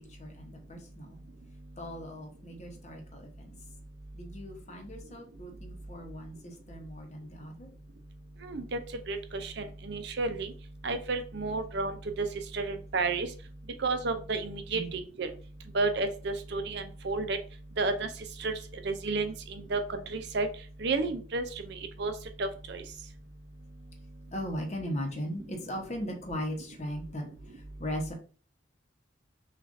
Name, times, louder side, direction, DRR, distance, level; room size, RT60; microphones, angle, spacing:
voice 1, 0.1-1.2 1.8-3.5 4.1-7.7 14.7-14.9 24.3-28.1, equal, 35° left, 2 dB, 0.9 m, -38 dB
voice 2, 8.4-8.8 9.1-10.5 10.8-12.3 12.5-13.3 13.8-15.3 15.7-17.4 17.8-18.1 18.4-18.5 18.8-20.5 20.8-22.1 22.4-22.8, right 3 dB, 55° right, 7 dB, 0.6 m, -31 dB
6.1 x 2.5 x 2.6 m, 0.40 s
head